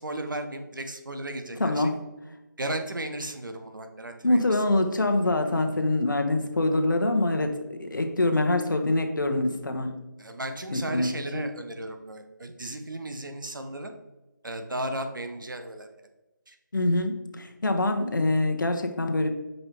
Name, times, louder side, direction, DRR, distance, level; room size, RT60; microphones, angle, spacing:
voice 1, 0.0-1.9 2.6-4.6 10.2-13.9 14.4-15.9 16.5-16.6, right 1 dB, 75° right, 6 dB, 1.1 m, -35 dB
voice 2, 1.6-2.0 4.2-10.0 10.7-11.4 16.7-19.3, left 2 dB, 70° left, 5 dB, 1.1 m, -25 dB
5.5 x 5.4 x 4.5 m, 1.0 s
figure-of-eight pair, 160°, 11 cm